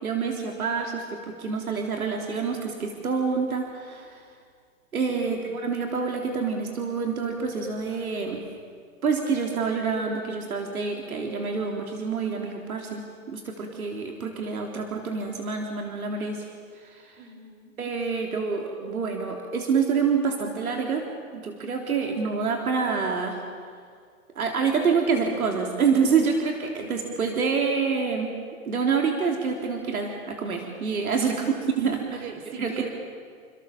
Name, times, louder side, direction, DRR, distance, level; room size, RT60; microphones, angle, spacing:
voice 1, 0.0-4.2 4.9-8.4 9.0-16.5 16.8-17.3 17.8-21.1 21.3-23.4 24.4-28.3 28.7-31.5 31.8-32.2 32.6-32.7, right 5 dB, 85° right, 2 dB, 3.7 m, -27 dB
voice 2, 5.1-5.5 17.2-17.7 31.2-32.9, right 5 dB, 50° right, 5 dB, 4.7 m, -42 dB
29.0 x 27.0 x 7.3 m, 2.1 s
hypercardioid pair, 140°, 42 cm